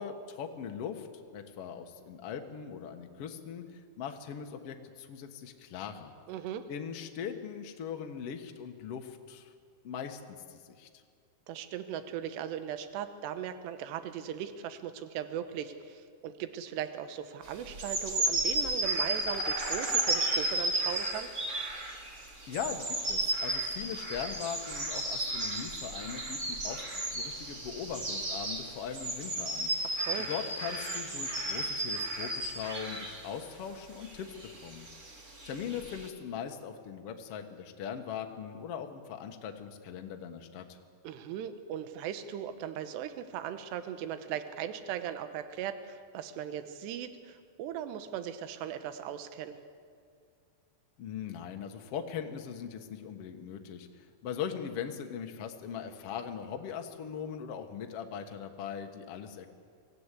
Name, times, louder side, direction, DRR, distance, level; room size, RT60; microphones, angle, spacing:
voice 1, 0.0-6.1 6.7-9.5 9.8-10.9 22.5-29.7 30.2-34.4 34.6-34.9 35.4-40.8 51.0-59.5, left 7 dB, 75° left, 5 dB, 1.3 m, -40 dB
voice 2, 6.3-6.7 11.5-21.3 29.8-30.3 41.0-49.6, right 9 dB, 80° right, 10 dB, 3.2 m, -38 dB
sound 1, 17.6-33.3 34.0-36.1, right 1 dB, 35° right, 1.2 m, -33 dB
24.5 x 15.5 x 8.3 m, 2.1 s
omnidirectional pair, 4.9 m